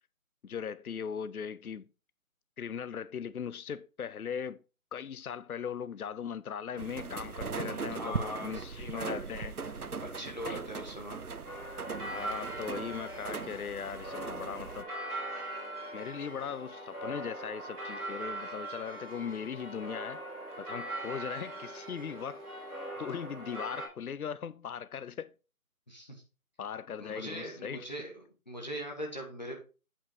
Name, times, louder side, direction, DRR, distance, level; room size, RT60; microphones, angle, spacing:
voice 1, 0.4-1.9 2.6-4.6 4.9-9.8 10.5-10.6 12.1-14.9 15.9-20.3 20.6-22.5 23.0-25.3 26.6-27.9, left 7 dB, 75° left, 0.6 m, -39 dB
sound 1, 6.8-14.8, right 5 dB, 85° right, 1.0 m, -39 dB
voice 2, 7.6-8.7 8.9-9.2 10.0-11.2 25.9-26.2 27.0-29.6, equal, 30° left, 1.5 m, -41 dB
sound 2, 11.4-23.9, right 1 dB, 5° right, 2.4 m, -41 dB
8.5 x 5.5 x 4.9 m
figure-of-eight pair, 175°, 44 cm